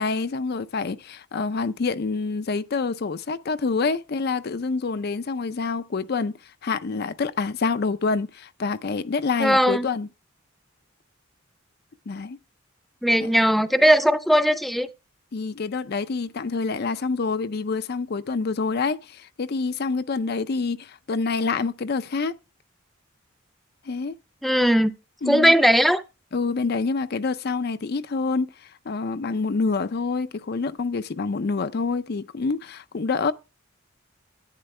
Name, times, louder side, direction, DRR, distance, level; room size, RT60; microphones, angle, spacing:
voice 1, 0.0-10.1 12.1-12.4 13.2-13.3 15.3-22.3 23.8-24.1 25.2-25.5 26.3-33.3, left 4 dB, 50° left, 0.5 m, -27 dB
voice 2, 9.4-9.9 13.0-14.9 24.4-24.9 25.3-26.0, equal, ahead, 0.6 m, -18 dB
11.5 x 9.7 x 3.2 m
head